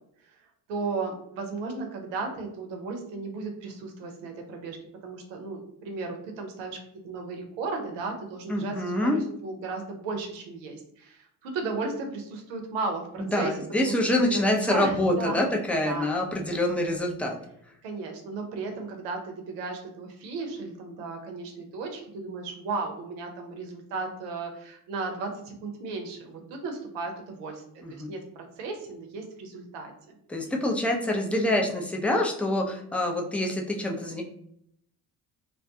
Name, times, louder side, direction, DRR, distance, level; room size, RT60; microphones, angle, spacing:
voice 1, 0.7-4.8 5.0-6.8 7.0-13.5 13.8-15.4 15.8-16.1 17.8-27.6 27.9-29.9, right 3 dB, 75° right, 3 dB, 0.7 m, -35 dB
voice 2, 8.5-9.2 13.2-17.4 27.8-28.1 30.3-34.2, left 1 dB, 5° left, 0 dB, 0.4 m, -26 dB
2.3 x 2.2 x 2.7 m, 0.71 s
hypercardioid pair, 60°, 45 cm